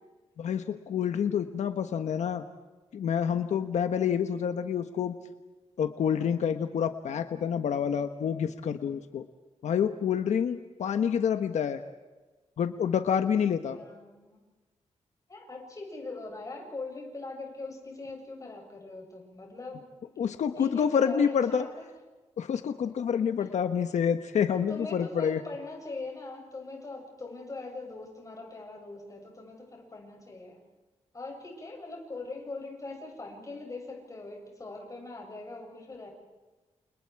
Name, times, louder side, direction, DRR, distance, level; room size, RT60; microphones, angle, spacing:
voice 1, 0.4-2.4 2.9-5.1 5.8-9.2 9.6-11.8 12.6-13.8 20.2-21.7 22.4-25.4, left 7 dB, 90° left, 8 dB, 1.3 m, -28 dB
voice 2, 13.7-14.4 15.3-20.3 20.6-21.9 23.4-23.5 24.5-30.6 31.1-36.1, left 3 dB, 30° left, 1 dB, 7.6 m, -42 dB
29.5 x 29.0 x 4.8 m, 1.2 s
wide cardioid pair, 140°, 12 cm